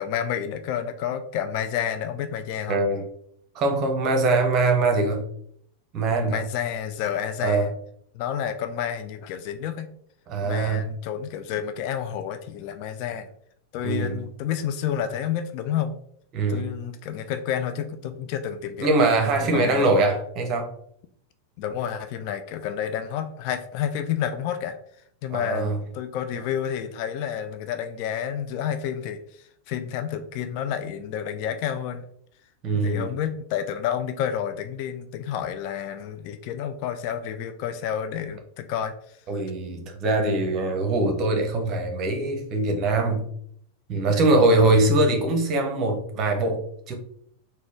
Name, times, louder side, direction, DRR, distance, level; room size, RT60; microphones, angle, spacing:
voice 1, 0.0-2.8 6.3-7.7 8.1-9.9 10.4-13.3 13.7-16.0 16.5-18.9 19.4-19.8 21.6-24.8 25.2-29.2 29.7-32.0 32.7-38.9 43.9-44.5, left 9 dB, 45° left, 8 dB, 0.3 m, -30 dB
voice 2, 2.7-3.0 3.5-5.3 5.9-6.4 7.4-7.7 10.3-10.9 13.8-14.2 16.3-16.7 18.8-20.7 25.3-25.8 32.6-33.1 39.3-43.3 43.9-46.9, right 2 dB, 35° right, 4 dB, 0.8 m, -22 dB
4.0 x 2.2 x 3.1 m, 0.67 s
figure-of-eight pair, 90°, 0 cm